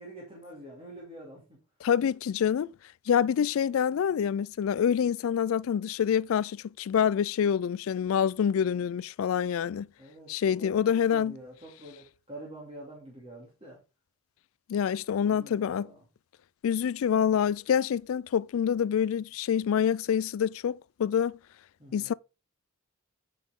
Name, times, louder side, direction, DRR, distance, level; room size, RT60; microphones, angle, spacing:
voice 1, 0.0-1.6 4.0-4.1 10.0-13.8 15.3-16.0 21.8-22.1, right 1 dB, 25° right, 2.4 m, -46 dB
voice 2, 1.8-2.7 3.1-9.9 10.3-11.3 14.7-15.9 16.6-21.4 21.9-22.1, left 8 dB, 70° left, 0.3 m, -26 dB
8.9 x 5.7 x 3.6 m
head